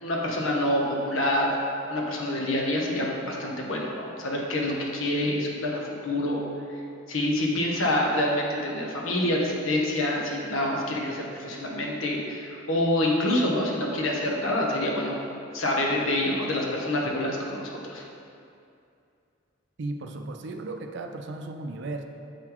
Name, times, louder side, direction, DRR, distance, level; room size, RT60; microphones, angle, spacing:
voice 1, 0.0-1.5 1.9-6.4 6.7-6.8 7.1-15.2 15.5-18.0, left 1 dB, 90° left, -1 dB, 1.0 m, -27 dB
voice 2, 19.8-22.0, right 2 dB, 60° right, 4 dB, 0.5 m, -35 dB
7.2 x 3.9 x 4.4 m, 2.5 s
head